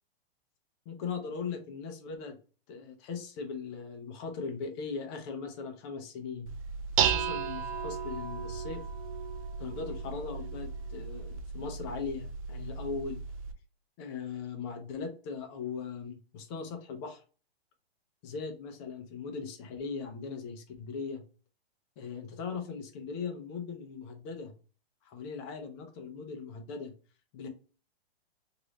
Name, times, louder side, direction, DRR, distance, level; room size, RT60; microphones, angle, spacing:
voice 1, 0.9-2.4 2.7-6.5 7.0-8.8 9.6-13.2 14.0-17.2 18.2-21.2 22.0-24.5 25.0-26.9 27.3-27.5, left 5 dB, 25° left, 4 dB, 0.7 m, -39 dB
Dishes pots and pans, 6.5-13.5, right 7 dB, 35° right, 0.4 m, -34 dB
3.0 x 2.7 x 3.0 m, 0.37 s
hypercardioid pair, 145°, 31 cm